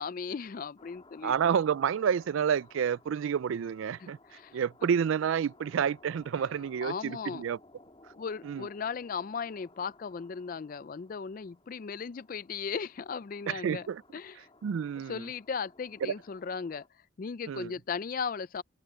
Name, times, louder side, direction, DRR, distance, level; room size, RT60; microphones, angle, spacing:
voice 1, 0.0-1.3 4.0-4.6 6.4-6.5 6.8-7.4 8.1-13.9 14.1-14.4 15.1-16.8 17.2-18.6, left 5 dB, 40° left, 0.4 m, -37 dB
sound 1, 0.8-16.9, left 2 dB, 25° left, 3.0 m, -59 dB
voice 2, 1.2-4.2 4.5-7.6 8.4-8.7 13.5-14.0 14.6-15.3 16.0-16.1 17.5-17.7, right 7 dB, 75° right, 0.3 m, -29 dB
head